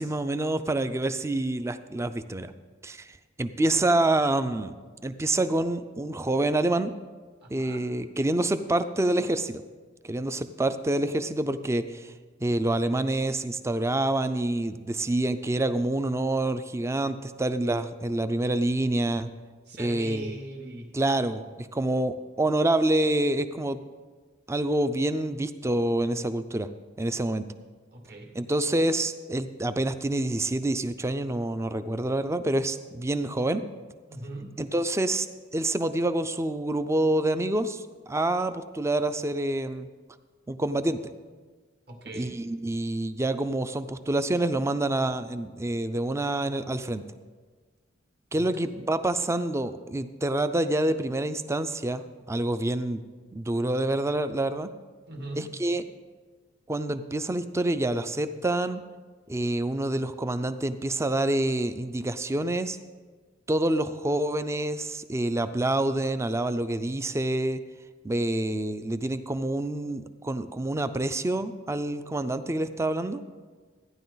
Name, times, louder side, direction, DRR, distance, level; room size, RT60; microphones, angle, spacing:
voice 1, 0.0-2.5 2.8-3.1 3.4-4.7 5.0-6.9 7.5-9.6 10.1-12.1 12.4-19.3 19.8-20.4 20.9-23.8 24.5-26.7 27.0-27.5 28.3-33.6 34.6-35.3 35.5-39.9 40.5-41.0 42.1-47.0 48.3-53.0 53.3-54.7 55.4-55.8 56.7-58.8 59.3-62.8 63.5-67.6 68.0-73.2, right 1 dB, 15° right, 11 dB, 0.4 m, -27 dB
voice 2, 7.4-7.8 19.7-20.9 27.9-28.3 34.1-34.5 41.9-42.3 48.4-48.5 55.1-55.5, right 2 dB, 55° right, 1 dB, 1.8 m, -40 dB
14.0 x 10.0 x 4.0 m, 1.4 s
head